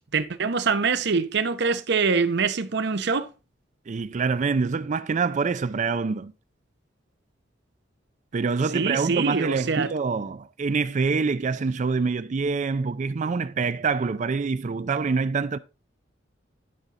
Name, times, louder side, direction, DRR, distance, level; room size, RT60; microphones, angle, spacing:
voice 1, 0.1-3.3 8.7-9.9, right 5 dB, 65° right, 0.8 m, -24 dB
voice 2, 3.9-6.3 8.3-15.6, right 4 dB, 40° right, 0.4 m, -25 dB
11.0 x 5.6 x 3.7 m
head